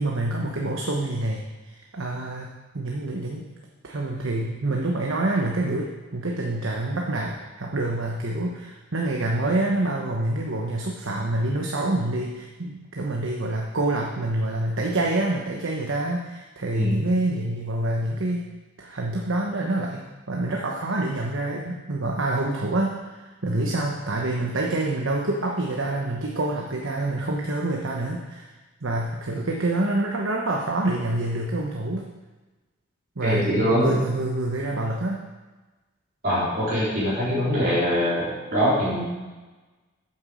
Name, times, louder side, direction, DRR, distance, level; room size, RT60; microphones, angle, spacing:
voice 1, 0.0-2.5 2.7-3.5 3.8-18.4 18.8-28.5 28.8-32.0 33.2-35.2, right 2 dB, 75° right, 0 dB, 1.1 m, -27 dB
voice 2, 33.2-33.9 36.2-39.0, equal, 45° right, -8 dB, 3.5 m, -23 dB
8.9 x 7.4 x 6.3 m, 1.2 s
head